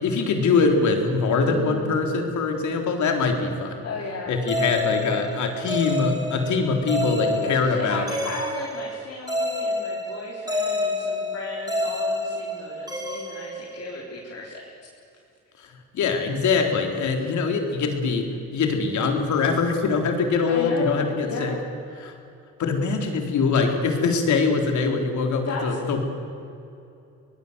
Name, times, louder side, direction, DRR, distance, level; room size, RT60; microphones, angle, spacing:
voice 1, 0.0-3.8 4.3-8.1 15.9-18.3 18.5-21.5 22.0-22.1 22.6-26.0, left 4 dB, 70° left, 3 dB, 4.0 m, -23 dB
voice 2, 1.3-2.3 3.8-4.4 7.4-14.7 20.5-21.7 25.5-25.8, left 3 dB, 55° left, -3 dB, 4.2 m, -35 dB
sound 1, 4.5-14.3, left 1 dB, 15° right, 3.3 m, -29 dB
23.5 x 20.0 x 8.2 m, 2.7 s
cardioid pair, 90°, 30 cm